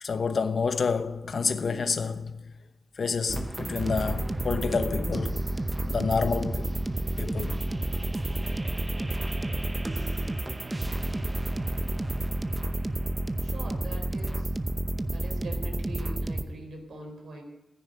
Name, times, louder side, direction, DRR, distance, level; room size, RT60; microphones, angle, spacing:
voice 1, 0.0-2.4 3.0-5.4 5.8-6.7 7.2-7.6, left 5 dB, 65° left, 0.9 m, -28 dB
sound 1, 3.3-16.4, right 2 dB, 20° right, 0.8 m, -30 dB
voice 2, 13.4-14.5 15.1-17.4, right 2 dB, 90° right, 4.0 m, -42 dB
15.0 x 10.5 x 9.0 m
wide cardioid pair, 85°, 0 cm